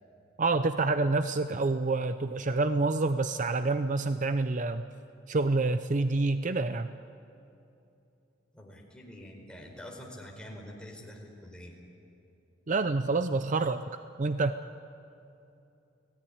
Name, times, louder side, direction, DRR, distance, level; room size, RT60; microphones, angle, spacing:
voice 1, 0.4-4.8 5.3-6.9 12.7-13.8 14.2-14.6, right 3 dB, 40° right, 10 dB, 0.6 m, -27 dB
voice 2, 8.5-11.7, left 1 dB, 5° left, 0 dB, 4.7 m, -46 dB
30.0 x 19.0 x 9.9 m, 2.7 s
head